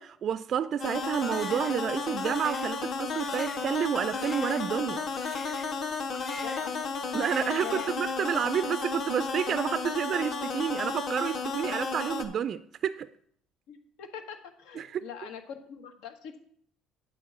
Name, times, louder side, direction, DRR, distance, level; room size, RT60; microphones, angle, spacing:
voice 1, 0.0-5.0 7.1-13.1 14.7-15.1, right 8 dB, 40° right, 0.3 m, -30 dB
sound 1, 0.8-12.2, left 4 dB, 45° left, 1.1 m, -33 dB
Crying sobbing, 1.2-5.9 6.1-6.9 7.1-8.1, left 2 dB, 15° left, 1.0 m, -46 dB
voice 2, 6.4-6.8 7.6-7.9 13.7-15.4 15.7-16.4, left 8 dB, 85° left, 1.3 m, -42 dB
9.3 x 4.6 x 7.3 m
cardioid pair, 145°, 0 cm